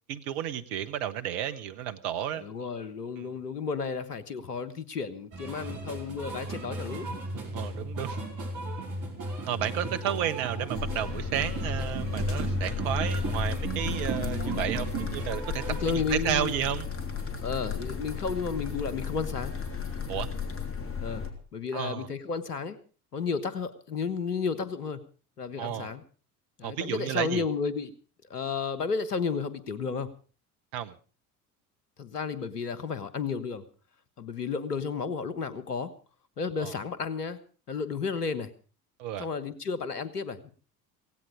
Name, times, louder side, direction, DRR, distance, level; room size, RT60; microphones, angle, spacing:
voice 1, 0.1-2.4 3.2-3.3 7.5-8.2 9.5-16.9 20.1-20.3 21.7-22.1 25.6-25.9 26.6-27.4 30.7-30.9 36.6-36.7 39.0-39.3, right 10 dB, 60° right, 10 dB, 1.4 m, -32 dB
voice 2, 2.4-7.1 14.1-14.7 15.7-16.5 17.4-19.5 21.0-21.2 21.5-22.8 23.1-25.0 25.4-26.0 26.6-27.9 28.3-30.1 32.0-33.6 34.2-35.9 36.4-37.4 37.7-38.5 39.2-40.5, left 5 dB, 85° left, 16 dB, 1.4 m, -32 dB
sound 1, 5.3-16.0, right 2 dB, 40° right, 5.4 m, -34 dB
sound 2, 10.7-21.3, left 6 dB, 30° left, 3.4 m, -35 dB
17.0 x 16.5 x 5.1 m, 0.39 s
figure-of-eight pair, 65°, 45 cm